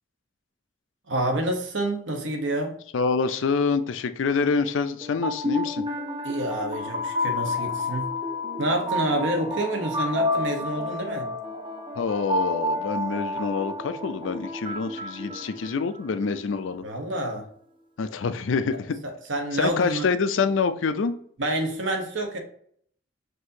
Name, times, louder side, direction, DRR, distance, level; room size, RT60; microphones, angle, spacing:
voice 1, 1.1-2.7 6.2-8.1 8.6-11.3 16.8-17.5 19.3-20.1 21.4-22.4, right 1 dB, 75° right, 0.9 m, -28 dB
voice 2, 2.9-5.9 12.0-16.8 18.0-19.0 19.5-21.1, left 5 dB, 85° left, 0.4 m, -26 dB
sound 1, 5.0-16.1, left 2 dB, 25° right, 0.5 m, -30 dB
6.0 x 2.7 x 2.7 m
head